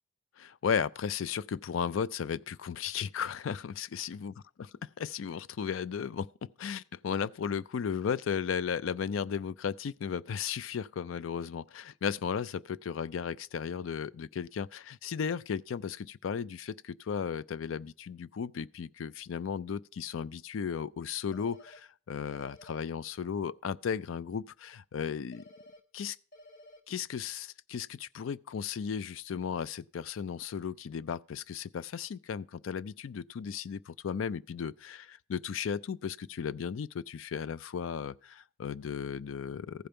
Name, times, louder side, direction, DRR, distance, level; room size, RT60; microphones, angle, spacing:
voice 1, 0.4-4.3 4.6-25.4 25.9-26.2 26.9-39.9, left 7 dB, 80° left, 0.4 m, -35 dB
sound 1, 21.3-21.8 22.3-22.8 25.3-25.8 26.3-26.8, left 1 dB, 50° left, 1.2 m, -53 dB
14.5 x 5.2 x 4.3 m
head